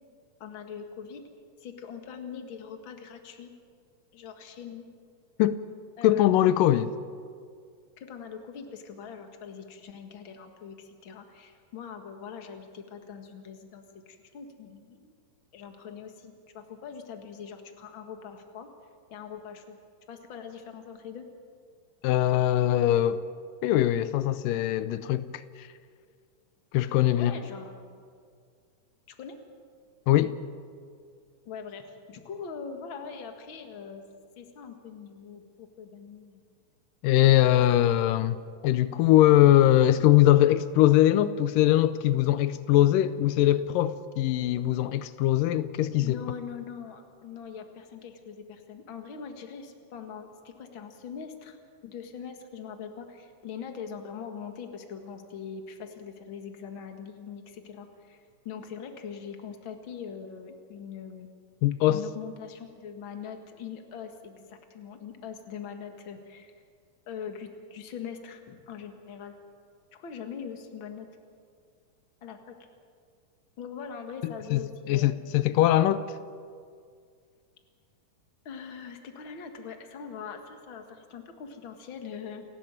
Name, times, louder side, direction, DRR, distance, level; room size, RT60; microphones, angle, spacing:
voice 1, 0.4-1.2 1.6-3.5 4.1-4.9 6.0-6.3 8.0-15.1 15.5-18.7 19.1-19.8 20.1-21.3 27.1-28.0 29.1-29.4 31.5-34.0 34.4-36.4 37.5-37.6 46.0-51.6 51.8-61.3 61.9-66.5 67.1-69.3 69.9-71.1 72.2-72.6 73.6-75.1 75.6-75.7 78.5-82.4, left 6 dB, 45° left, 2.2 m, -42 dB
voice 2, 6.0-6.9 22.0-23.2 23.6-25.7 26.7-27.3 30.1-30.4 37.0-38.4 38.6-46.2 61.6-62.0 74.2-74.6 74.9-76.0, left 13 dB, 90° left, 2.4 m, -22 dB
29.0 x 12.5 x 9.0 m
omnidirectional pair, 3.8 m